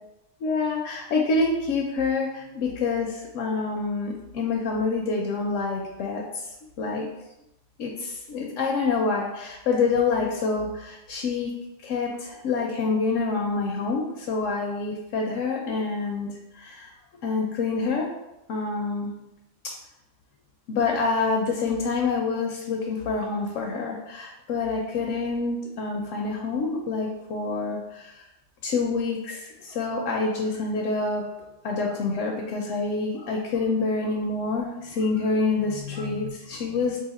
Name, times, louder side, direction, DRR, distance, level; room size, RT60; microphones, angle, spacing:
voice 1, 0.4-6.4 6.8-7.1 7.8-11.5 11.8-16.3 16.5-16.9 17.2-18.1 18.5-19.1 20.7-28.1 28.6-31.2 31.6-37.0, left 4 dB, 80° left, 0 dB, 0.9 m, -27 dB
2.8 x 2.7 x 4.0 m, 0.93 s
omnidirectional pair, 1.3 m